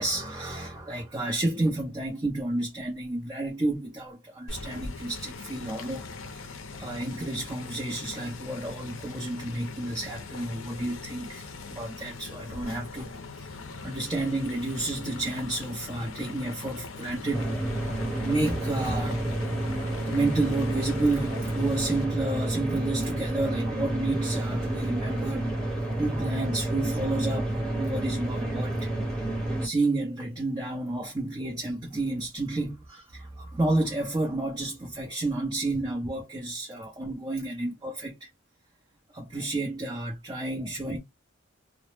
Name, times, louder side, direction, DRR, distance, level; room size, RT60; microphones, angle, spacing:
voice 1, 0.0-6.1 6.7-13.1 13.4-17.5 18.2-19.2 20.1-28.9 29.6-38.3 39.1-41.0, right 2 dB, 20° right, 0.5 m, -31 dB
sound 1, 4.5-22.0, left 4 dB, 70° left, 0.5 m, -41 dB
sound 2, 17.3-29.7, right 1 dB, 5° left, 0.8 m, -30 dB
2.0 x 2.0 x 3.0 m
head